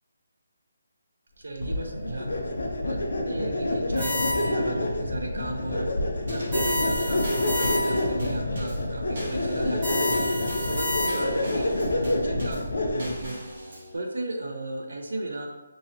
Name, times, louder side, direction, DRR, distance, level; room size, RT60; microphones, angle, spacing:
voice 1, 1.4-2.3 2.8-5.9 6.3-10.2 10.6-13.4 13.9-15.5, right 2 dB, 70° right, 2 dB, 0.7 m, -35 dB
sound 1, 1.6-13.3, left 1 dB, 60° left, 0.6 m, -28 dB
sound 2, 4.0-4.7 6.5-8.2 9.8-11.5, left 1 dB, 10° right, 1.1 m, -30 dB
Drum kit / Snare drum / Bass drum, 6.3-14.0, equal, 35° right, 1.2 m, -40 dB
3.8 x 2.9 x 2.8 m, 1.1 s
hypercardioid pair, 180°, 0 cm